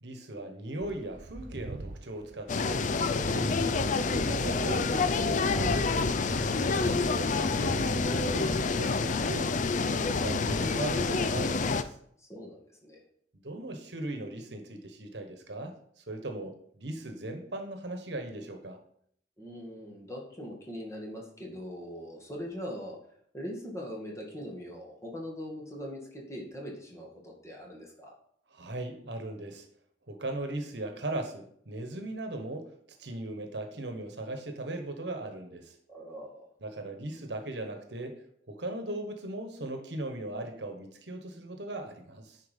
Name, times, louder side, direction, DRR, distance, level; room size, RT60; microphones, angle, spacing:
voice 1, 0.0-2.8 3.1-6.2 7.1-9.5 9.8-11.9 13.4-18.8 28.5-29.6 30.1-32.7 33.0-35.7 36.6-38.2 38.5-42.4, right 2 dB, 65° right, 5 dB, 1.3 m, -38 dB
sound 1, 0.8-10.6, right 2 dB, 50° right, 0.6 m, -40 dB
sound 2, 2.5-11.8, left 4 dB, 45° left, 0.5 m, -28 dB
voice 2, 6.6-7.1 12.2-13.0 19.4-23.0 23.3-28.1 35.9-36.4, equal, 15° left, -1 dB, 2.0 m, -41 dB
10.0 x 4.6 x 5.3 m, 0.65 s
head